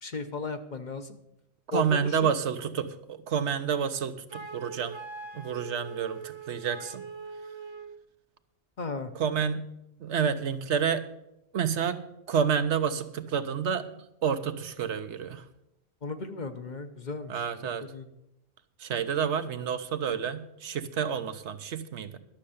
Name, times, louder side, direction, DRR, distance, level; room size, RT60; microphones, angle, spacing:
voice 1, 0.0-1.2 1.7-1.8 2.2-2.3 8.8-9.1 16.0-17.3 17.8-18.0, left 4 dB, 45° left, 7 dB, 0.9 m, -35 dB
voice 2, 1.7-5.0 5.3-7.0 9.1-9.6 10.0-11.0 11.5-13.9 14.2-15.4 17.3-17.8 18.8-22.2, right 7 dB, 80° right, 10 dB, 1.2 m, -29 dB
Wind instrument woodwind instrument, 4.3-8.0, right 4 dB, 35° right, 0.5 m, -42 dB
12.0 x 6.6 x 8.5 m, 0.83 s
omnidirectional pair, 1.2 m